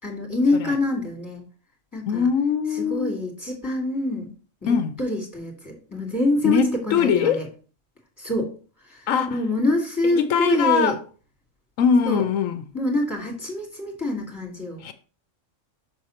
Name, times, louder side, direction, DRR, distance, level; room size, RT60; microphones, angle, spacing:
voice 1, 0.0-1.4 1.9-2.3 2.7-4.3 4.6-7.5 8.2-8.5 8.8-11.0 12.0-12.2 12.7-14.8, left 2 dB, 15° left, 2.7 m, -25 dB
voice 2, 2.1-3.1 4.7-4.9 6.4-7.4 9.1-9.4 10.2-11.0 11.8-12.6 14.8-14.9, left 7 dB, 80° left, 1.0 m, -21 dB
6.5 x 4.2 x 6.5 m
omnidirectional pair, 1.3 m